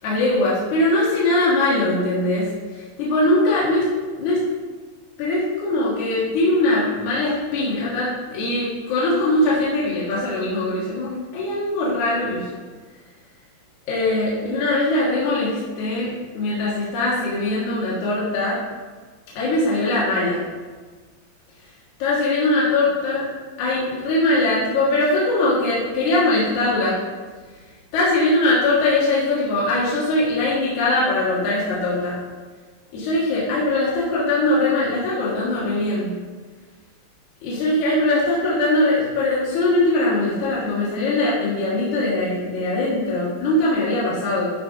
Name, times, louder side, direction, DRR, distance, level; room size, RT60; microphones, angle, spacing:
voice 1, 0.0-4.4 5.2-12.5 13.9-18.6 19.4-20.4 22.0-23.3 23.6-27.0 27.9-32.2 32.9-36.2 37.4-44.5, left 2 dB, 60° left, -8 dB, 2.9 m, -21 dB
12.0 x 4.5 x 5.0 m, 1.4 s
omnidirectional pair, 4.0 m